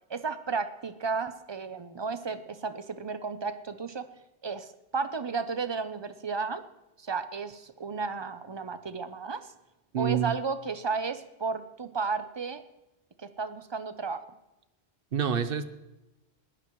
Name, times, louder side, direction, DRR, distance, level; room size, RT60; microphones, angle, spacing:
voice 1, 0.1-4.1 4.4-6.6 7.0-9.5 10.0-12.6 13.2-14.2, right 5 dB, 30° right, 11 dB, 0.6 m, -33 dB
voice 2, 9.9-10.3 15.1-15.6, right 8 dB, 60° right, 12 dB, 1.0 m, -27 dB
20.0 x 15.0 x 3.1 m, 0.97 s
omnidirectional pair, 1.1 m